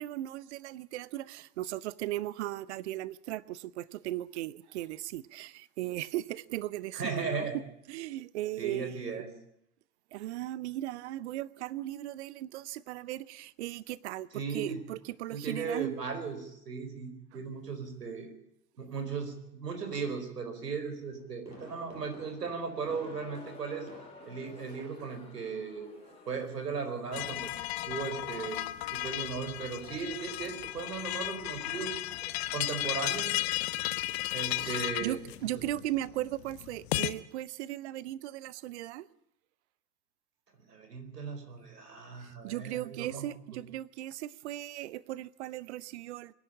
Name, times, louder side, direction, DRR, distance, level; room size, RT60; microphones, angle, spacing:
voice 1, 0.0-7.6 7.9-9.2 10.1-16.0 24.6-24.7 34.5-39.1 42.4-46.3, right 14 dB, 45° right, 0.8 m, -37 dB
voice 2, 6.9-7.6 8.6-9.3 14.3-14.8 15.3-18.3 18.8-23.9 24.3-25.9 26.3-27.5 27.9-28.6 28.9-33.3 34.3-35.2 40.7-43.6, right 5 dB, 70° right, 4.7 m, -37 dB
Fireworks, 21.0-24.4 24.7-25.1 25.4-25.5, equal, 85° right, 7.2 m, -52 dB
Crowd, 22.6-27.6, left 4 dB, 10° left, 4.4 m, -53 dB
sound 1, 27.1-37.1, left 16 dB, 40° left, 1.0 m, -35 dB
24.0 x 11.0 x 9.9 m
figure-of-eight pair, 95°, 50 cm